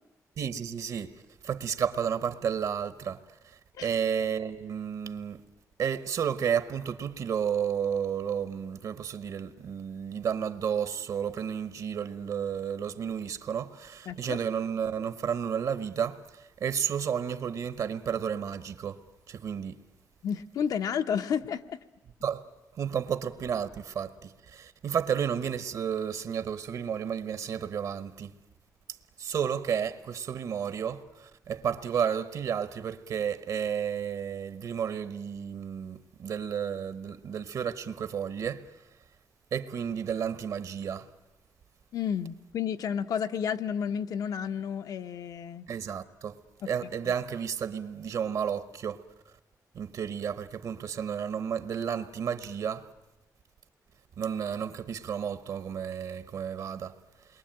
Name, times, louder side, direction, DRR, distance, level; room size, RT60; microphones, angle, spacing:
voice 1, 0.4-1.1 1.4-5.4 5.8-19.8 22.2-22.5 22.7-28.3 29.2-38.7 39.5-41.1 45.7-46.4 46.6-49.0 49.7-52.9 54.2-57.0, right 8 dB, 65° right, 1.0 m, -32 dB
voice 2, 14.1-14.4 20.2-21.8 41.9-45.6, left 8 dB, 70° left, 0.9 m, -31 dB
28.5 x 22.5 x 8.9 m
wide cardioid pair, 175°, 6 cm